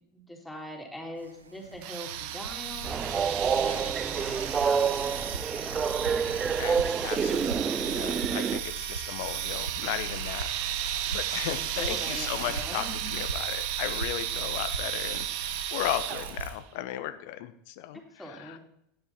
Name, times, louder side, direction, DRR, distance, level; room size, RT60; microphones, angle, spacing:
voice 1, 0.1-6.2 11.8-13.2 17.9-18.6, equal, 5° left, 0 dB, 3.4 m, -42 dB
sound 1, 1.2-16.5, right 3 dB, 85° right, 1.0 m, -40 dB
sound 2, 1.8-16.6, right 12 dB, 55° right, 0.9 m, -34 dB
Train, 2.8-8.6, right 6 dB, 25° right, 0.3 m, -28 dB
voice 2, 3.6-3.9 6.6-10.5 10.8-18.6, left 13 dB, 55° left, 12 dB, 0.9 m, -36 dB
10.0 x 9.9 x 4.4 m, 0.75 s
figure-of-eight pair, 80°, 0 cm